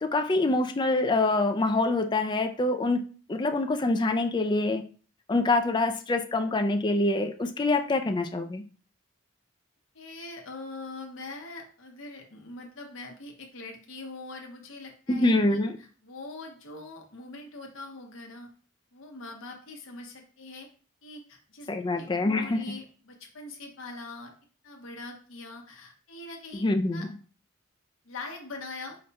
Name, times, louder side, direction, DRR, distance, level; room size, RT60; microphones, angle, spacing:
voice 1, 0.0-3.0 3.3-4.8 5.3-8.6 15.1-15.8 21.7-22.6 26.5-27.1, left 2 dB, 20° left, 6 dB, 0.3 m, -25 dB
voice 2, 9.9-18.5 18.9-20.7 21.0-21.7 22.0-24.3 24.6-26.6 26.9-27.1 28.0-29.0, left 3 dB, 70° left, 2 dB, 0.9 m, -42 dB
5.0 x 2.2 x 4.0 m, 0.41 s
head